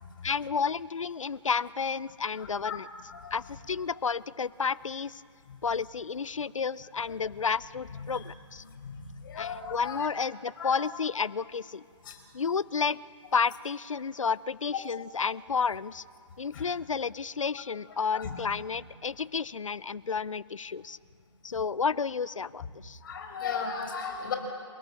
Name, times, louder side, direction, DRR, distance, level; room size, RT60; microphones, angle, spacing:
voice 1, 0.2-2.9 3.3-5.2 5.6-8.6 9.4-11.8 12.3-13.0 13.3-16.0 16.4-21.0 21.4-23.0, left 5 dB, 90° left, 20 dB, 0.6 m, -31 dB
voice 2, 2.4-2.8 3.1-3.3 5.5-5.6 7.9-8.2 8.7-10.1 10.6-10.7 12.0-12.2 16.5-16.6 17.5-17.6 18.1-18.4 23.0-24.4, left 6 dB, 45° left, 4 dB, 4.8 m, -37 dB
28.0 x 17.5 x 7.7 m, 2.4 s
hypercardioid pair, 150°, 16 cm